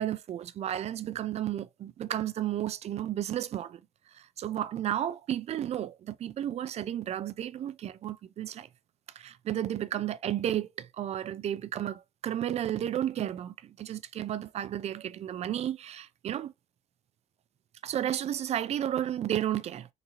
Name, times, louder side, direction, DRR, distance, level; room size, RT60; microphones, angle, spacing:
voice 1, 0.0-3.8 4.1-8.7 9.2-16.5 17.8-19.9, right 11 dB, 50° right, 0.4 m, -32 dB
3.9 x 2.7 x 2.8 m
cardioid pair, 120°, 14 cm